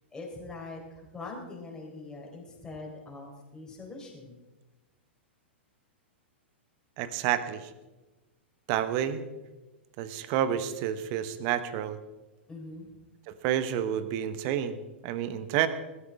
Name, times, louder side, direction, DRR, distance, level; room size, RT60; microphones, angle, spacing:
voice 1, 0.1-4.4 12.5-12.9, left 3 dB, 10° left, -1 dB, 4.0 m, -43 dB
voice 2, 7.0-7.7 8.7-9.3 10.0-12.0 13.4-15.7, right 10 dB, 40° right, 13 dB, 1.1 m, -29 dB
20.5 x 13.0 x 3.6 m, 1.1 s
figure-of-eight pair, 100°, 6 cm